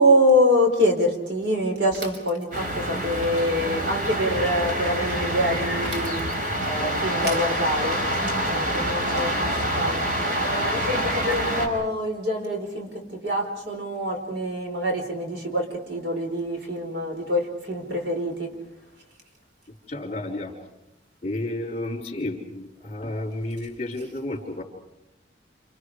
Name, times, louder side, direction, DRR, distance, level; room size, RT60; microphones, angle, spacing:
voice 1, 0.0-8.0 8.4-18.5, equal, 70° right, 3 dB, 5.0 m, -25 dB
Bicycle / Mechanisms, 1.9-2.9 5.8-6.7, right 2 dB, 85° right, 4.6 m, -41 dB
sound 1, 2.5-11.7, equal, 50° right, 5.1 m, -26 dB
voice 2, 19.9-20.6 21.2-24.6, left 1 dB, 35° left, -6 dB, 4.4 m, -31 dB
29.0 x 28.5 x 5.0 m, 0.90 s
head